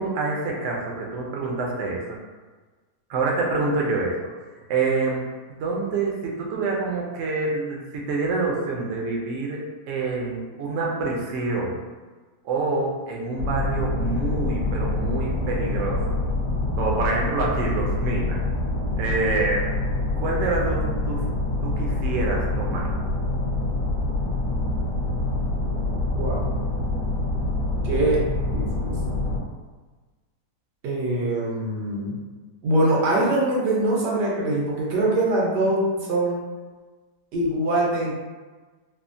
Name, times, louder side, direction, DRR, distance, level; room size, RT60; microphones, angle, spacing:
voice 1, 0.0-2.2 3.1-4.1 4.7-5.3 5.6-11.8 12.4-16.0 16.8-18.4 19.0-19.7 20.2-21.3 21.6-22.9, right 3 dB, 65° right, -2 dB, 0.7 m, -26 dB
sound 1, 13.4-29.4, left 2 dB, 65° left, 0.9 m, -26 dB
voice 2, 26.2-26.5 27.8-29.2 30.8-32.2 32.6-36.4 37.3-38.1, right 1 dB, 85° right, -4 dB, 1.4 m, -23 dB
3.4 x 2.1 x 2.5 m, 1.3 s
omnidirectional pair, 1.8 m